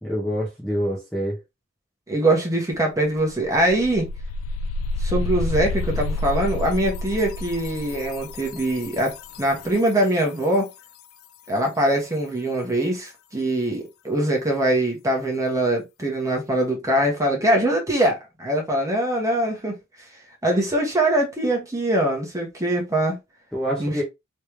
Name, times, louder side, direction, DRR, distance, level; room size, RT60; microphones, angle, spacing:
voice 1, 0.0-1.4 23.5-24.0, equal, 5° left, 1.0 m, -26 dB
voice 2, 2.1-4.1 5.0-10.7 11.5-19.8 20.4-23.2 23.8-24.0, right 1 dB, 15° right, 1.3 m, -23 dB
sound 1, 2.7-2.8 3.1-9.9, left 2 dB, 65° left, 0.3 m, -29 dB
3.3 x 3.1 x 3.2 m
head